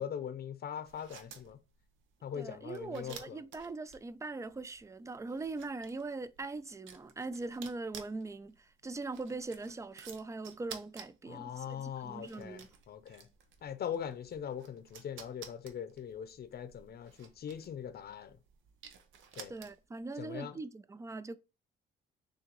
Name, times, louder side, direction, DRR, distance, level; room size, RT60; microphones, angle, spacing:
voice 1, 0.0-1.6 2.2-3.4 11.3-13.3 13.6-18.4 19.4-19.5 20.2-20.6, left 8 dB, 50° left, 0.6 m, -41 dB
sound 1, 0.8-20.0, right 7 dB, 80° right, 0.7 m, -54 dB
voice 2, 2.3-12.7 19.5-21.4, right 3 dB, 15° right, 0.3 m, -41 dB
6.3 x 2.6 x 3.0 m
cardioid pair, 90°, 20 cm